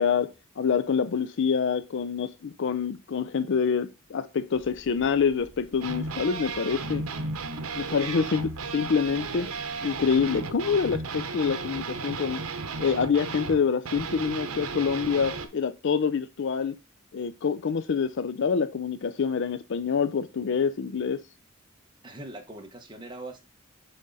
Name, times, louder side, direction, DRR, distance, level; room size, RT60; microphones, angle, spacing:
voice 1, 0.0-7.0 7.7-9.5 9.8-12.4 12.8-16.7 17.1-21.2, left 6 dB, 55° left, 0.4 m, -26 dB
sound 1, 4.5-11.0, equal, 25° left, 2.4 m, -54 dB
sound 2, 5.8-15.5, right 4 dB, 85° right, 0.9 m, -34 dB
voice 2, 22.0-23.4, right 2 dB, 20° right, 1.3 m, -41 dB
7.5 x 3.7 x 4.0 m
head